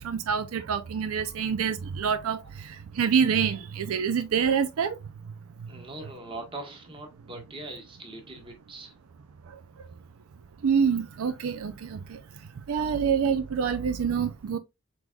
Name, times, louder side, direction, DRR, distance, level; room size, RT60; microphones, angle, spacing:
voice 1, 0.0-5.0 5.6-5.7 9.5-9.6 10.6-12.2 12.7-14.6, right 6 dB, 75° right, 0.4 m, -26 dB
voice 2, 5.7-8.9, right 2 dB, 25° right, 1.2 m, -41 dB
4.7 x 3.9 x 2.2 m
head